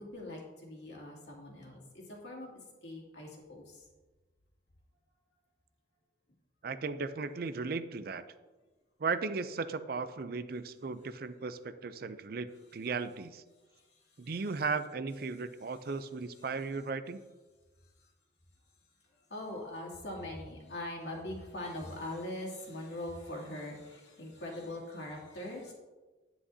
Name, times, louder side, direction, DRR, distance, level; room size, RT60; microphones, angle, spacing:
voice 1, 0.0-3.9 13.6-14.6 15.7-16.0 16.3-16.5 18.0-18.1 19.3-25.7, left 1 dB, 65° left, -2 dB, 2.5 m, -42 dB
voice 2, 6.6-8.2 9.0-13.4 14.2-17.2, right 4 dB, 55° right, 12 dB, 0.5 m, -36 dB
10.0 x 9.7 x 2.8 m, 1.2 s
head